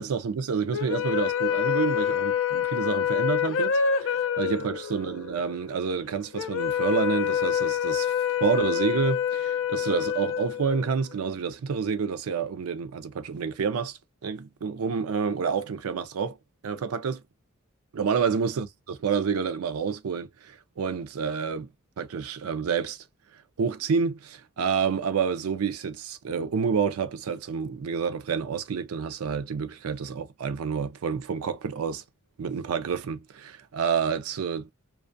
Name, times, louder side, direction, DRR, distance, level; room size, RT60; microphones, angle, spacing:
voice 1, 0.0-8.1 8.4-16.4 16.6-17.2 17.9-21.7 22.0-23.0 23.6-32.0 32.4-34.7, right 6 dB, 90° right, 0.4 m, -29 dB
sound 1, 0.7-11.1, left 8 dB, 65° left, 0.4 m, -27 dB
2.3 x 2.2 x 2.4 m
head